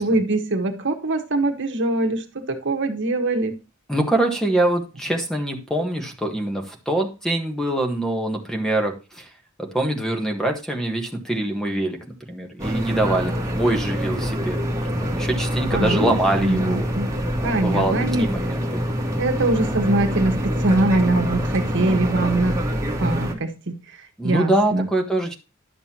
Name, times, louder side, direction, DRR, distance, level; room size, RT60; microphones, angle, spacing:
voice 1, 0.0-3.6 15.7-17.1 17.4-18.3 19.2-22.6 23.0-23.7 24.2-24.9, right 2 dB, 60° right, 1.4 m, -22 dB
voice 2, 3.9-9.3 9.6-12.0 12.3-16.9 17.6-18.8 24.2-25.3, right 1 dB, ahead, 1.5 m, -24 dB
sound 1, 12.6-23.3, equal, 15° right, 1.8 m, -25 dB
11.0 x 6.8 x 2.9 m
head